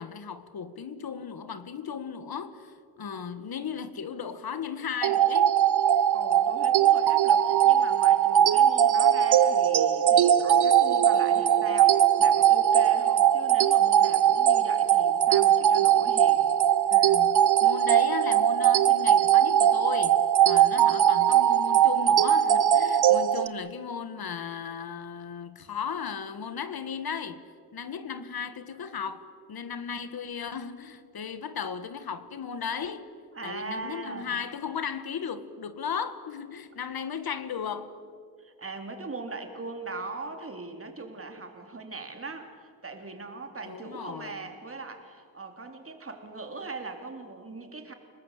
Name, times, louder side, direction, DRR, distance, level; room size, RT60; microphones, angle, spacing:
voice 1, 0.0-5.5 16.9-27.4 27.7-33.1 33.4-38.0 43.6-44.5, left 7 dB, 70° left, 1.6 m, -36 dB
sound 1, 5.0-23.5, right 10 dB, 85° right, 1.0 m, -21 dB
voice 2, 6.1-16.5 33.3-34.3 38.4-47.9, right 3 dB, 35° right, 3.2 m, -40 dB
30.0 x 19.0 x 8.2 m
wide cardioid pair, 120°, 38 cm